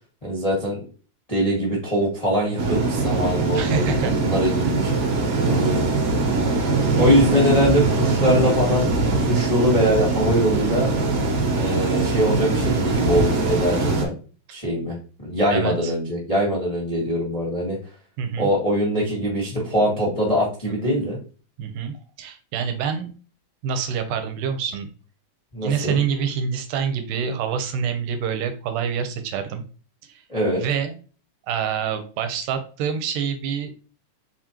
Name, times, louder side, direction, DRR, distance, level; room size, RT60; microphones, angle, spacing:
voice 1, 0.2-0.8 1.3-4.9 5.4-5.8 6.9-10.9 11.5-14.1 14.5-17.8 18.4-21.2 25.5-26.0 30.3-30.6, equal, 80° left, -5 dB, 0.3 m, -22 dB
sound 1, 2.6-14.1, right 3 dB, 60° right, 1.7 m, -22 dB
voice 2, 3.5-4.2 7.0-7.1 15.5-15.9 18.2-18.5 20.7-20.8 21.6-23.1 23.6-24.9 25.6-29.6 30.6-30.9 31.5-33.7, right 7 dB, 85° right, 8 dB, 2.2 m, -26 dB
4.8 x 3.7 x 2.9 m, 0.37 s
omnidirectional pair, 3.7 m